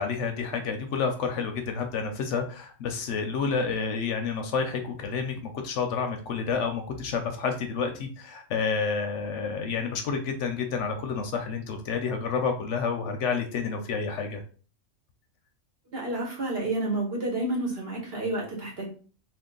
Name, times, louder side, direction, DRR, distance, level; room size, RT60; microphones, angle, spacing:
voice 1, 0.0-14.4, left 5 dB, 70° left, 5 dB, 0.8 m, -29 dB
voice 2, 15.9-18.9, right 2 dB, 50° right, -2 dB, 1.1 m, -30 dB
2.7 x 2.6 x 3.7 m, 0.40 s
omnidirectional pair, 1.4 m